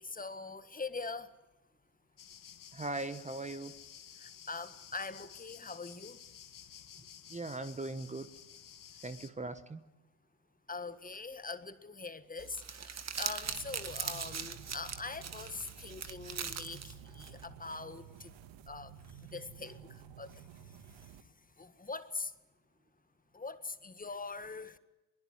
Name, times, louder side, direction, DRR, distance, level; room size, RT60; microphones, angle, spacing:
voice 1, 0.0-1.3 4.2-6.2 10.7-18.4 18.7-18.9 19.2-21.2 21.6-22.3 23.3-24.8, left 4 dB, 15° left, 12 dB, 1.6 m, -43 dB
sound 1, 2.2-9.3, left 9 dB, 40° left, 2.1 m, -53 dB
voice 2, 2.7-3.7 7.3-8.3 9.0-9.8, right 2 dB, 15° right, 11 dB, 1.2 m, -39 dB
Crumpling crinkling, 12.4-17.5, right 6 dB, 35° right, 2.0 m, -41 dB
sound 2, 13.4-21.2, right 8 dB, 65° right, 2.0 m, -53 dB
22.0 x 21.0 x 9.8 m, 1.0 s
supercardioid pair, 80°, 48 cm